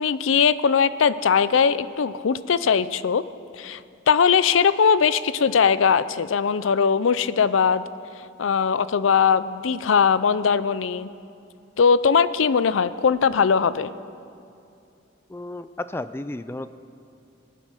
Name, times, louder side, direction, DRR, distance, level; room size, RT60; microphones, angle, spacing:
voice 1, 0.0-3.2 3.6-3.8 4.1-7.8 8.4-11.1 11.8-13.9, left 6 dB, 85° left, 15 dB, 0.5 m, -20 dB
voice 2, 15.3-16.7, left 2 dB, 10° left, 13 dB, 0.3 m, -33 dB
20.0 x 9.1 x 6.5 m, 2.6 s
head